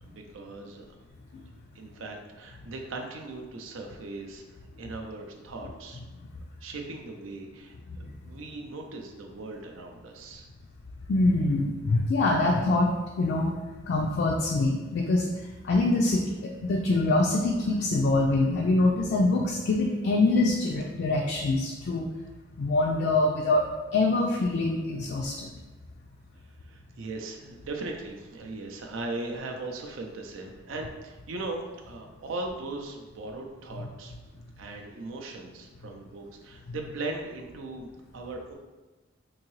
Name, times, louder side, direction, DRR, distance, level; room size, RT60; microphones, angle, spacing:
voice 1, 0.0-0.9 1.7-6.0 6.6-10.4 26.6-34.1 34.6-38.5, right 2 dB, 85° right, 2 dB, 0.5 m, -39 dB
voice 2, 11.1-13.5 13.9-15.3 15.6-22.0 22.6-25.5, left 2 dB, 55° left, 0 dB, 0.3 m, -24 dB
3.8 x 2.7 x 3.1 m, 1.2 s
head